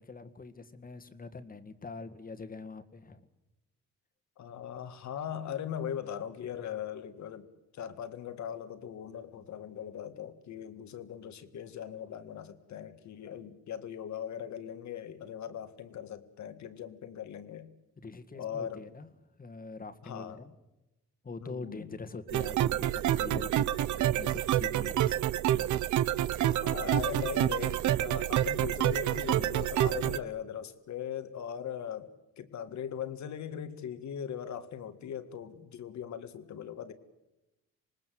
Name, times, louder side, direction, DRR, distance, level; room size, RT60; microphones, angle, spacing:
voice 1, 0.0-3.3 18.0-19.1 19.4-20.5 21.2-23.7 24.0-25.3, left 4 dB, 30° left, 9 dB, 1.9 m, -44 dB
voice 2, 4.4-7.5 7.7-17.7 18.4-18.9 20.0-20.4 21.4-21.9 26.5-36.9, left 9 dB, 70° left, 10 dB, 1.9 m, -40 dB
sound 1, 22.3-30.2, right 12 dB, 75° right, 0.8 m, -28 dB
26.0 x 19.5 x 7.8 m, 0.96 s
cardioid pair, 90°, 30 cm